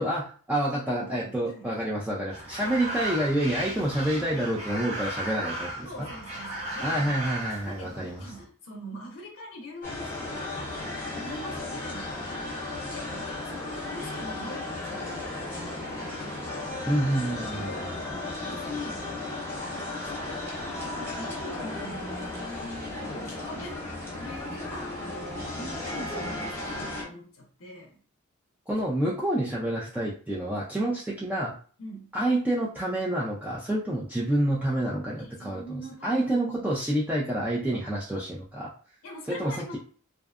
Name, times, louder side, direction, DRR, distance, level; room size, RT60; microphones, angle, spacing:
voice 1, 0.0-6.1 6.8-8.3 16.9-17.9 28.7-31.5 32.1-38.7 39.3-39.8, right 1 dB, 10° right, -6 dB, 0.3 m, -28 dB
voice 2, 1.0-1.7 2.6-2.8 5.8-7.2 7.6-10.7 11.1-12.6 12.9-15.1 17.5-17.9 18.5-19.0 20.1-20.4 20.8-22.2 23.2-23.8 24.2-25.0 25.5-27.9 31.8-32.1 35.2-36.7 39.0-39.8, left 1 dB, 75° left, 1 dB, 0.5 m, -43 dB
sound 1, 2.3-8.4, right 1 dB, 30° right, 0.7 m, -36 dB
sound 2, 9.8-27.0, left 2 dB, 10° left, 0.8 m, -35 dB
2.6 x 2.1 x 2.3 m, 0.42 s
head